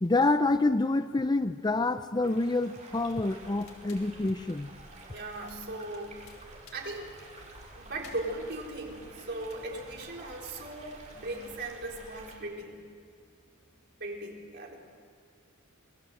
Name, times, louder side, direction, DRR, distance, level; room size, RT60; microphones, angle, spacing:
voice 1, 0.0-4.7, left 2 dB, 20° left, 11 dB, 0.5 m, -27 dB
sound 1, 2.2-12.4, right 3 dB, 35° right, 4.7 m, -52 dB
Crackle, 2.9-12.3, left 1 dB, 90° left, 4.0 m, -54 dB
voice 2, 5.1-6.4 6.7-7.1 7.8-12.8 14.0-14.8, right 2 dB, 50° right, -1 dB, 4.3 m, -38 dB
28.0 x 19.5 x 7.9 m, 2.4 s
head